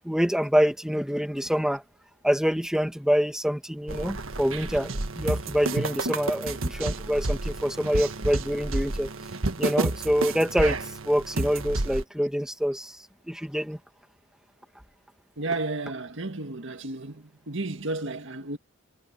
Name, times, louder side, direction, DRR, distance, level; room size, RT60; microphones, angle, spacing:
voice 1, 0.0-1.8 2.2-9.1 9.6-10.8 11.0-12.9 13.3-13.8, equal, 5° right, 1.7 m, -26 dB
sound 1, 3.9-12.0, right 2 dB, 85° right, 1.5 m, -30 dB
voice 2, 15.4-18.6, right 2 dB, 65° right, 1.9 m, -32 dB
head